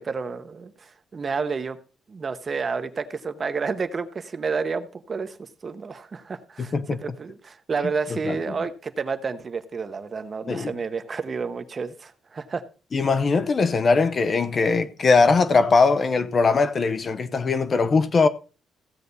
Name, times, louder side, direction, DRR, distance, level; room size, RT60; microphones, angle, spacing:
voice 1, 0.0-1.8 2.1-12.6, right 5 dB, 30° right, 0.9 m, -30 dB
voice 2, 12.9-18.3, left 4 dB, 30° left, 0.7 m, -20 dB
15.5 x 8.2 x 4.1 m
cardioid pair, 170°, 0 cm